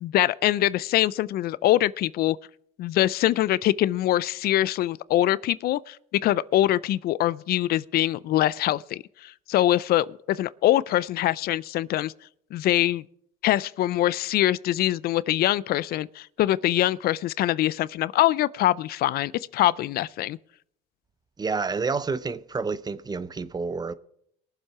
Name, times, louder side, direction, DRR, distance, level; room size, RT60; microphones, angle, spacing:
voice 1, 0.0-2.4 2.8-6.0 6.2-12.1 12.5-13.0 13.4-20.4, left 14 dB, 65° left, 0.4 m, -23 dB
voice 2, 21.4-23.9, right 4 dB, 25° right, 0.7 m, -29 dB
21.5 x 7.4 x 4.8 m
cardioid pair, 110°, 17 cm